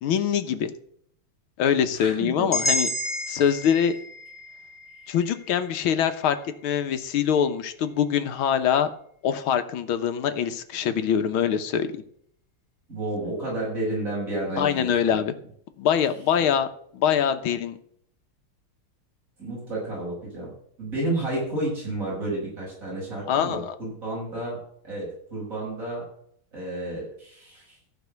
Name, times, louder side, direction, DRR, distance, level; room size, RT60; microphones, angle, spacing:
voice 1, 0.0-0.7 1.6-2.9 3.3-4.0 5.1-6.4 6.6-8.9 9.2-11.9 14.6-15.3 15.8-16.7 16.9-17.8 23.3-23.8, left 8 dB, 75° left, 9 dB, 1.8 m, -23 dB
sound 1, 2.5-6.5, left 1 dB, 15° left, 2.2 m, -31 dB
voice 2, 12.9-15.2 16.4-16.5 19.4-20.5 20.8-24.6 24.8-26.0 26.5-27.8, right 1 dB, 35° right, -6 dB, 7.0 m, -31 dB
14.5 x 5.5 x 8.1 m, 0.65 s
omnidirectional pair, 2.4 m